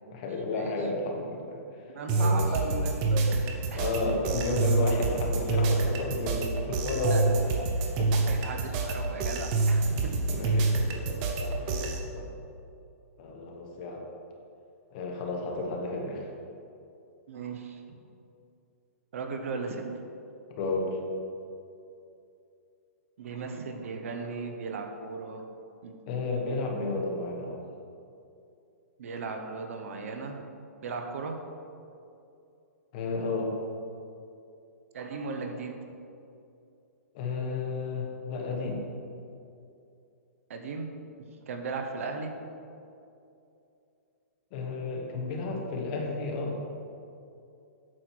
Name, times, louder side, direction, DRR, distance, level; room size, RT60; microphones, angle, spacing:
voice 1, 0.1-1.6 2.1-2.4 3.7-7.4 8.0-8.1 10.3-12.3 13.2-14.0 14.9-16.3 20.5-21.0 26.1-27.6 32.9-33.6 37.1-38.8 44.5-46.6, left 2 dB, 30° left, 0 dB, 1.2 m, -32 dB
voice 2, 1.9-3.9 7.0-7.7 8.1-10.1 17.3-18.0 19.1-19.9 23.2-25.4 25.8-25.9 29.0-30.4 30.8-31.4 34.9-35.8 40.5-40.9 41.5-42.3, right 4 dB, 60° right, 5 dB, 1.0 m, -36 dB
sound 1, 2.1-12.0, right 3 dB, 25° right, 0.7 m, -27 dB
8.7 x 6.5 x 4.5 m, 2.6 s
hypercardioid pair, 170°, 8 cm